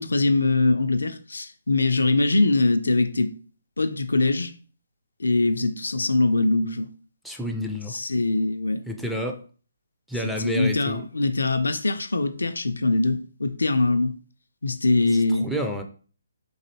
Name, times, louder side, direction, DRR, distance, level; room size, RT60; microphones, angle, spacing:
voice 1, 0.0-3.3 3.8-4.5 5.2-6.9 7.9-8.8 10.2-14.1 14.6-15.5, left 2 dB, 75° left, 0.3 m, -22 dB
voice 2, 7.2-7.9 8.9-9.4 10.1-11.0 15.3-15.8, equal, ahead, 0.4 m, -29 dB
3.9 x 2.6 x 2.9 m
figure-of-eight pair, 140°, 0 cm